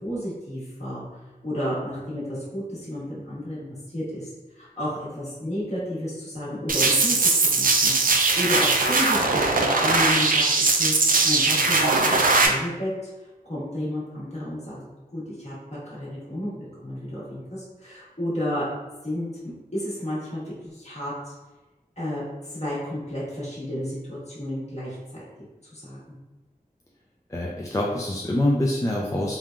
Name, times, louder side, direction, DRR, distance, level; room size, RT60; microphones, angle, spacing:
voice 1, 0.0-1.2 1.4-10.4 10.7-13.1 13.4-14.8 15.1-18.7 19.0-21.3 22.0-25.2 25.7-26.2, left 1 dB, 45° left, -8 dB, 1.3 m, -32 dB
sound 1, 6.7-12.5, right 3 dB, 65° right, 0.4 m, -20 dB
voice 2, 27.3-29.4, left 1 dB, 20° left, -4 dB, 0.3 m, -25 dB
3.3 x 2.2 x 2.4 m, 1.1 s
wide cardioid pair, 60°, 16 cm